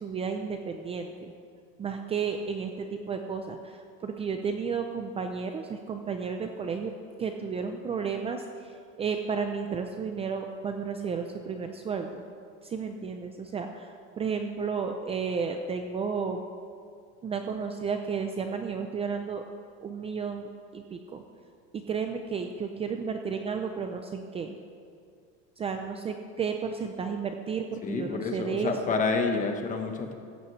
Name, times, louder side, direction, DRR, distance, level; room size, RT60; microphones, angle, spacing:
voice 1, 0.0-1.3 1.8-6.9 7.2-12.2 12.6-16.4 17.2-19.4 19.8-20.5 20.7-21.2 21.9-24.6 25.6-29.0, right 5 dB, 20° right, 5 dB, 0.5 m, -32 dB
voice 2, 27.8-30.1, left 4 dB, 25° left, 4 dB, 1.2 m, -29 dB
15.5 x 15.5 x 3.3 m, 2.2 s
supercardioid pair, 150°, 30 cm